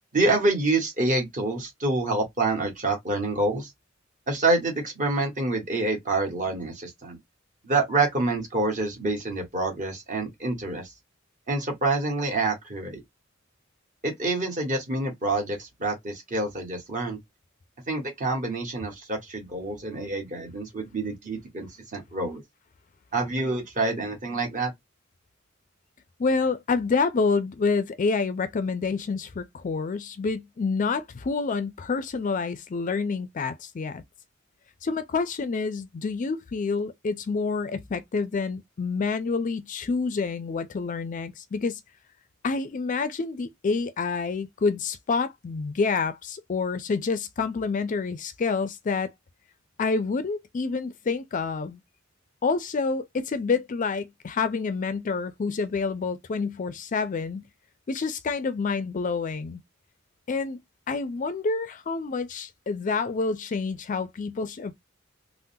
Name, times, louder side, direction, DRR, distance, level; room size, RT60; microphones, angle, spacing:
voice 1, 0.1-3.7 4.3-7.2 7.6-10.9 11.5-13.0 14.0-17.2 17.9-22.4 23.1-24.7, right 2 dB, 40° right, 1.3 m, -27 dB
voice 2, 26.2-34.0 34.8-41.8 42.4-49.1 49.8-51.8 52.4-57.4 57.9-59.6 60.3-60.6 60.9-64.8, left 4 dB, 40° left, 0.4 m, -28 dB
3.7 x 2.1 x 2.6 m
head